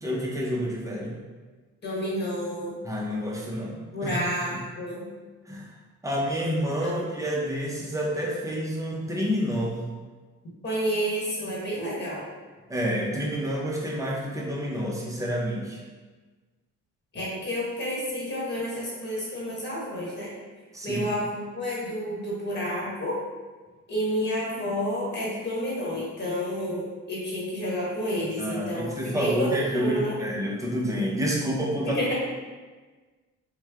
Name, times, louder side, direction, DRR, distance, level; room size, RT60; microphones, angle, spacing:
voice 1, 0.0-1.2 2.8-4.1 5.5-5.7 6.0-9.9 12.7-15.8 20.7-21.0 28.4-32.0, equal, 10° right, -3 dB, 0.6 m, -29 dB
voice 2, 1.8-2.8 3.9-5.1 6.8-7.0 10.6-12.2 17.1-20.3 20.8-23.2 23.9-30.2 31.8-32.1, equal, 35° left, -6 dB, 1.2 m, -30 dB
3.0 x 2.1 x 3.4 m, 1.3 s
cardioid pair, 115°, 31 cm